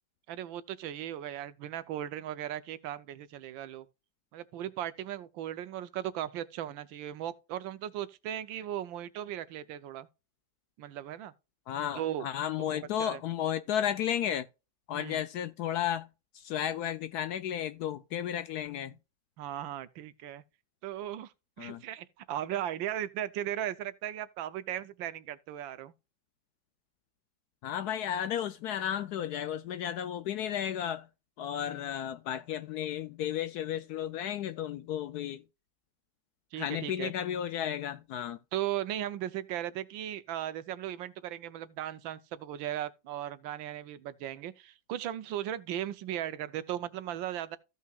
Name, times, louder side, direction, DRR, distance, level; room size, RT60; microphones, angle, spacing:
voice 1, 0.3-3.9 4.3-10.1 10.8-11.3 11.9-12.3 12.6-13.2 14.9-15.2 19.4-20.4 20.8-25.9 31.6-31.9 36.5-37.1 38.5-47.6, right 11 dB, 85° right, 1.5 m, -37 dB
voice 2, 11.7-14.5 14.9-16.1 16.3-18.9 21.6-21.8 27.6-31.1 31.4-35.4 36.6-38.4, left 10 dB, 70° left, 0.9 m, -33 dB
15.0 x 5.6 x 2.3 m
omnidirectional pair, 2.0 m